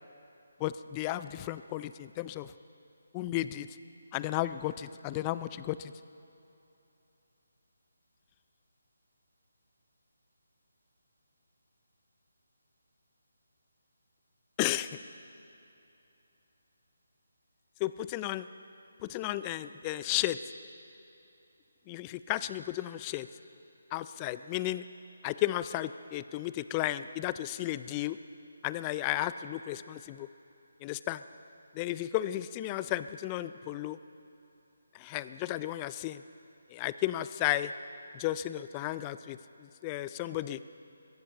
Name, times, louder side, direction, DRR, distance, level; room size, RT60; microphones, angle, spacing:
voice 1, 0.6-2.5 3.1-3.7 4.1-5.9 14.6-15.0 17.8-18.5 19.0-20.4 21.9-23.3 23.9-24.8 25.2-28.2 28.6-30.3 30.8-31.2 31.7-34.0 34.9-36.2 36.7-37.7 38.1-40.6, left 15 dB, 20° left, 14 dB, 0.4 m, -33 dB
22.0 x 17.0 x 3.0 m, 2.9 s
figure-of-eight pair, 150°, 0 cm